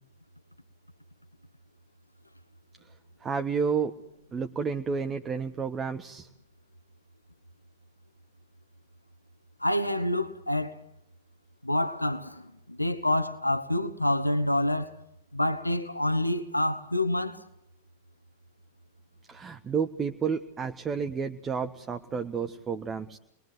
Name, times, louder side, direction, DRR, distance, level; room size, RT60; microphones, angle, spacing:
voice 1, 3.2-3.9 4.3-6.3 19.3-23.2, right 6 dB, 20° right, 1.4 m, -31 dB
voice 2, 9.6-10.8 11.6-14.9 15.3-17.4, left 1 dB, 85° left, 1.1 m, -27 dB
30.0 x 22.0 x 7.9 m
figure-of-eight pair, 90°, 0 cm